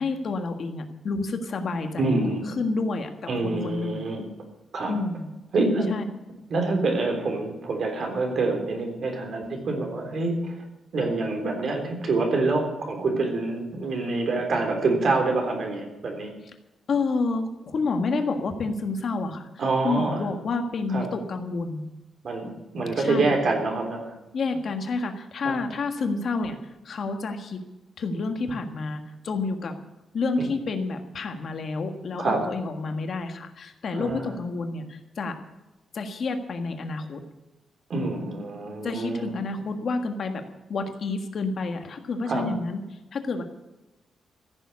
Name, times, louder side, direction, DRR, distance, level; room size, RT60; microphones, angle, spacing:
voice 1, 0.0-4.1 4.9-5.3 5.9-6.0 16.9-19.5 19.8-21.8 23.0-23.3 24.3-27.6 28.0-29.8 30.1-35.3 35.9-37.2 38.8-40.4 40.7-42.8 43.1-43.4, left 3 dB, 50° left, 5 dB, 1.6 m, -29 dB
voice 2, 2.0-2.4 3.3-4.2 4.7-5.0 5.5-5.9 6.5-10.6 10.9-16.3 19.6-20.2 20.9-21.1 22.2-24.1 25.4-25.6 30.4-30.5 32.2-32.4 33.9-34.3 37.9-39.3 42.3-42.5, right 3 dB, 50° right, 3 dB, 3.7 m, -26 dB
15.0 x 7.2 x 9.7 m, 1.0 s
wide cardioid pair, 155°, 0 cm